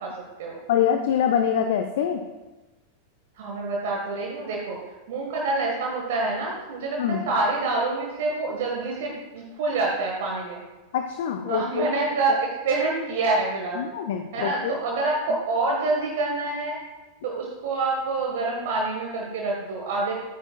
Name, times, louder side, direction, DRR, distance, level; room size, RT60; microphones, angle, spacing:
voice 1, 0.0-0.6 3.3-4.8 5.1-10.6 11.5-13.8 14.3-16.7 17.2-20.1, right 3 dB, 55° right, -2 dB, 1.4 m, -27 dB
voice 2, 0.7-2.3 7.0-7.3 10.9-11.9 13.8-14.8, left 8 dB, 55° left, 6 dB, 0.5 m, -24 dB
12.0 x 8.9 x 2.3 m, 1.1 s
figure-of-eight pair, 90°, 0 cm